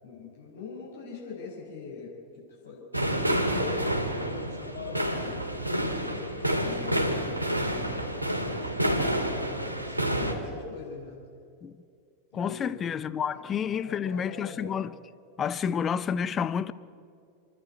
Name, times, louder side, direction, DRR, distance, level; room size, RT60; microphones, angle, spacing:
voice 1, 0.0-2.1 2.6-5.3 5.9-7.2 7.5-11.2 12.3-12.8 13.3-14.8, left 5 dB, 65° left, 6.2 m, -41 dB
sound 1, 2.9-10.3, right 1 dB, 85° right, 2.5 m, -29 dB
voice 2, 12.3-14.9 15.4-16.7, left 7 dB, 25° left, 0.7 m, -29 dB
28.5 x 11.5 x 9.6 m
figure-of-eight pair, 90°, 0 cm